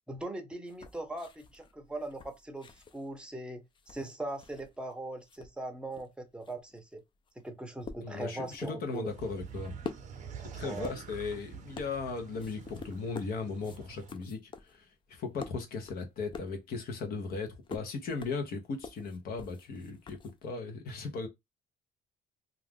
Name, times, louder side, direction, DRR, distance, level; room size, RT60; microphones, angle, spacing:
voice 1, 0.1-7.0 7.4-9.1 10.6-10.9, right 2 dB, 5° right, 0.7 m, -40 dB
sound 1, 0.7-4.9 5.2-20.6, left 5 dB, 30° left, 0.4 m, -48 dB
voice 2, 8.0-9.7 10.4-21.3, left 4 dB, 65° left, 0.8 m, -37 dB
sound 2, 9.1-14.1, right 7 dB, 50° right, 0.6 m, -47 dB
2.4 x 2.4 x 3.5 m
cardioid pair, 120°, 16 cm